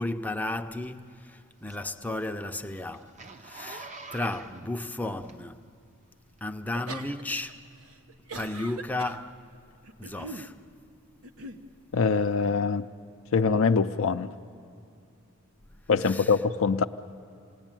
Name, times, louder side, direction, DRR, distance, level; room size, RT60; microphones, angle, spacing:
voice 1, 0.0-3.1 3.4-5.7 6.4-7.6 8.3-9.4 10.0-10.6 15.7-16.3, left 2 dB, 5° left, 0.7 m, -34 dB
Zipper (clothing), 0.8-5.8 6.3-6.5, right 3 dB, 35° right, 0.8 m, -46 dB
sound 1, 6.7-7.5 7.8-9.2 9.8-10.5 11.2-11.6, right 3 dB, 80° right, 1.3 m, -41 dB
voice 2, 11.9-12.9 13.3-14.3 15.9-16.8, left 5 dB, 65° left, 0.5 m, -24 dB
28.0 x 19.0 x 9.1 m
head